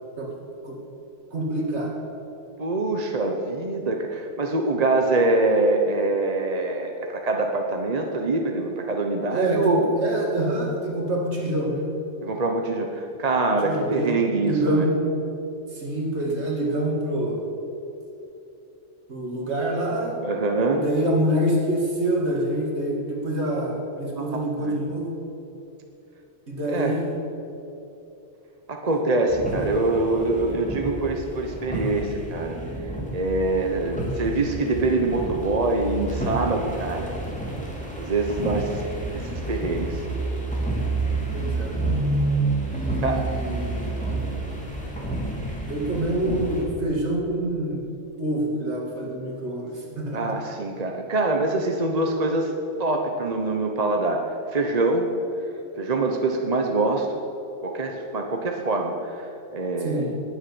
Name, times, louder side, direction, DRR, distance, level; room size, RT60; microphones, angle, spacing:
voice 1, 1.3-1.9 9.3-11.9 13.6-14.1 14.4-15.0 15.7-17.4 19.1-20.2 20.7-25.1 26.5-27.0 41.3-41.7 42.7-43.9 45.6-47.8 48.2-50.4 59.8-60.1, right 1 dB, 60° right, -2 dB, 2.7 m, -26 dB
voice 2, 2.6-9.9 12.2-14.8 20.2-20.9 24.1-24.3 24.6-24.8 26.7-27.0 28.7-32.6 33.1-37.1 38.0-38.8 39.1-40.0 42.2-42.3 43.0-43.2 50.1-52.5 52.8-55.1 55.8-57.2 57.6-60.2, right 2 dB, 35° right, 3 dB, 1.0 m, -24 dB
sound 1, 29.3-46.6, right 2 dB, 5° left, 2.8 m, -29 dB
20.0 x 7.5 x 7.0 m, 2.9 s
omnidirectional pair, 1.3 m